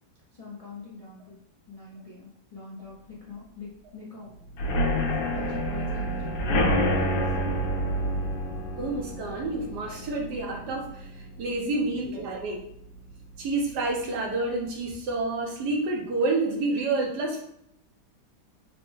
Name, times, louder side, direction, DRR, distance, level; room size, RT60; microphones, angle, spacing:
voice 1, 0.3-1.4 1.7-4.3 5.3-7.3 11.8-12.1, left 3 dB, 50° left, -7 dB, 0.4 m, -43 dB
sound 1, 4.5-12.2 12.6-12.9 13.2-13.3 13.7-13.8, equal, 70° left, 1.2 m, -28 dB
voice 2, 8.8-11.0 11.4-12.6 13.4-17.4, right 2 dB, 70° right, -1 dB, 1.3 m, -28 dB
4.1 x 2.1 x 3.1 m, 0.74 s
omnidirectional pair, 1.9 m